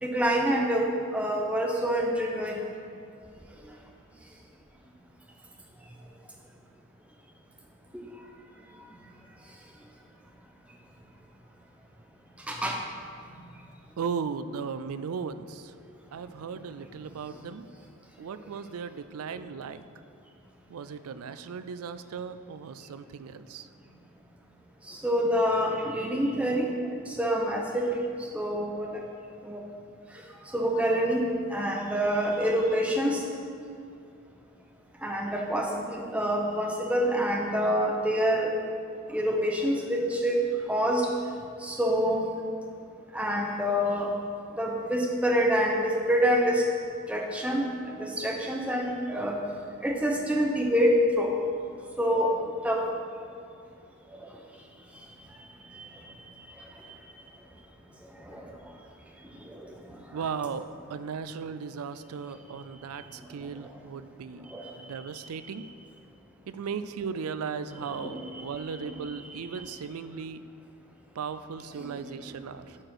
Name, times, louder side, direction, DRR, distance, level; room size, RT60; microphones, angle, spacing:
voice 1, 0.0-0.9 1.1-2.6 12.5-12.8 24.9-26.7 27.1-28.0 28.3-28.9 29.4-29.6 30.5-33.2 35.0-38.5 39.1-40.4 40.7-41.1 41.6-42.2 43.1-44.1 44.5-46.6 47.1-49.4 49.8-51.3 52.0-52.4 52.6-52.8 55.8-55.9 58.3-58.4 59.5-59.6 64.5-64.7 67.8-69.1 71.8-71.9, equal, 5° right, 0 dB, 0.8 m, -26 dB
voice 2, 14.0-15.7 16.1-17.7 18.2-19.9 20.7-23.7 60.1-65.7 66.5-70.4 71.2-72.8, right 6 dB, 80° right, 13 dB, 0.4 m, -37 dB
8.5 x 4.9 x 6.2 m, 2.4 s
head